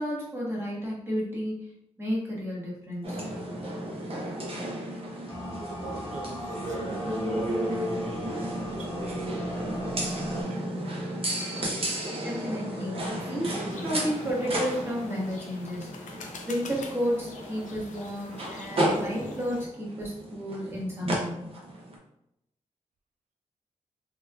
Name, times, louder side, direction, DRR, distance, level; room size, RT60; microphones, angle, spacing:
voice 1, 0.0-1.6 2.0-3.2 12.2-15.9 16.5-21.4, equal, 20° right, -5 dB, 1.0 m, -32 dB
sound 1, 3.0-22.0, right 1 dB, 50° right, 0.8 m, -33 dB
sound 2, 5.3-10.4, left 1 dB, 35° left, 0.8 m, -41 dB
voice 2, 5.6-7.7 8.3-9.5 9.9-10.9, right 4 dB, 75° right, 4 dB, 0.4 m, -43 dB
sound 3, 13.7-19.7, left 4 dB, 90° left, 0.5 m, -46 dB
3.4 x 3.1 x 2.3 m, 0.82 s
wide cardioid pair, 135°, 13 cm